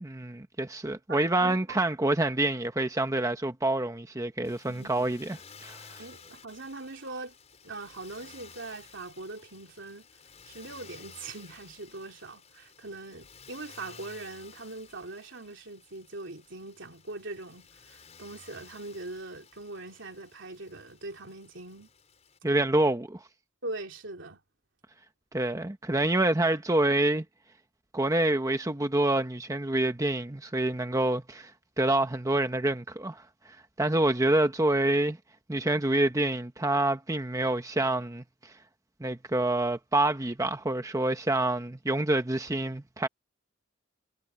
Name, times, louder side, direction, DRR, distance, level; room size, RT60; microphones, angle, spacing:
voice 1, 0.0-6.0 22.4-23.2 25.3-27.2 27.9-31.5 31.8-33.2 33.8-35.2 35.5-38.5 39.0-43.1, right 2 dB, 15° right, 0.9 m, -27 dB
voice 2, 1.1-1.6 4.7-4.9 6.0-7.3 7.6-10.1 10.5-21.9 23.6-24.4, right 2 dB, 70° right, 3.6 m, -41 dB
Motor vehicle (road), 4.4-22.4, left 6 dB, 35° left, 5.1 m, -54 dB
head